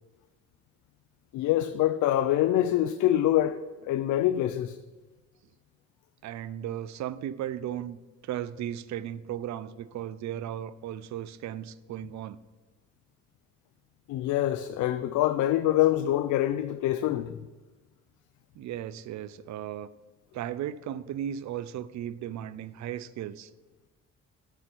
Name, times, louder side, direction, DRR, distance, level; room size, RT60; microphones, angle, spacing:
voice 1, 1.3-3.6 3.9-4.8 14.1-17.4, left 13 dB, 75° left, 0.4 m, -25 dB
voice 2, 6.2-8.0 8.2-12.4 18.6-19.9 20.3-23.5, right 11 dB, 65° right, 0.5 m, -36 dB
10.0 x 6.9 x 4.4 m
cardioid pair, 90°, 30 cm